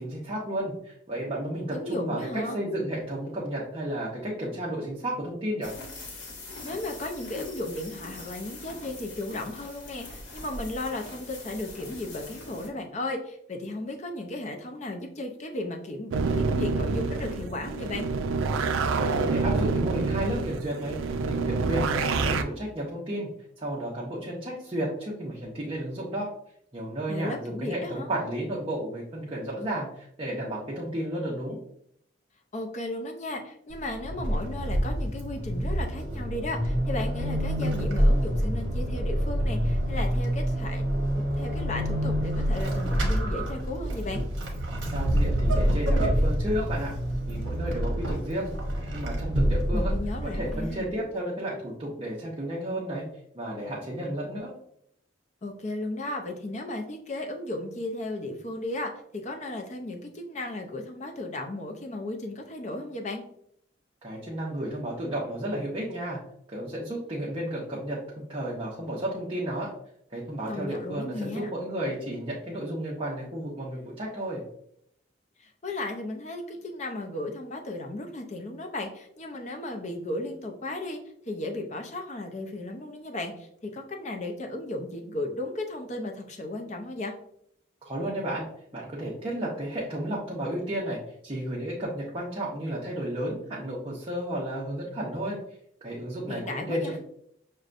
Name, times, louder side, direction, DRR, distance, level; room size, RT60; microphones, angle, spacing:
voice 1, 0.0-5.7 19.0-21.0 21.3-23.3 23.6-26.3 26.7-31.6 44.9-46.9 47.3-48.5 48.9-49.9 50.2-53.0 53.3-54.5 64.0-66.2 66.5-69.7 70.1-74.4 87.8-88.5 88.7-95.4 95.8-97.0, right 1 dB, 30° right, -5 dB, 0.6 m, -32 dB
voice 2, 1.7-3.0 6.6-18.1 27.1-28.1 32.5-40.9 41.1-44.2 49.7-50.9 55.4-63.2 70.5-71.5 75.4-81.0 81.3-87.1 96.3-97.0, left 2 dB, 35° left, 3 dB, 0.5 m, -35 dB
sound 1, 5.6-12.7, left 2 dB, 75° left, 1.1 m, -42 dB
sound 2, 16.1-22.4, right 4 dB, 90° right, 0.3 m, -27 dB
Vehicle / Accelerating revving vroom / Squeak, 33.7-50.9, equal, 70° right, 0.8 m, -27 dB
6.3 x 2.2 x 2.5 m, 0.71 s
head